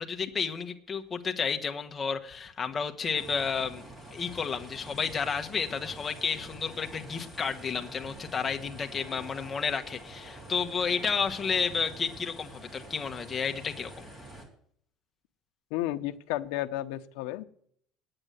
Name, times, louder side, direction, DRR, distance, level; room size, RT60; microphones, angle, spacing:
voice 1, 0.0-13.9, left 6 dB, 20° left, 4 dB, 1.1 m, -31 dB
sound 1, 3.1-14.5, right 1 dB, 20° right, 3.2 m, -46 dB
voice 2, 15.7-17.4, left 15 dB, 90° left, 7 dB, 0.8 m, -32 dB
9.8 x 8.9 x 8.0 m, 0.63 s
cardioid pair, 165°, 0 cm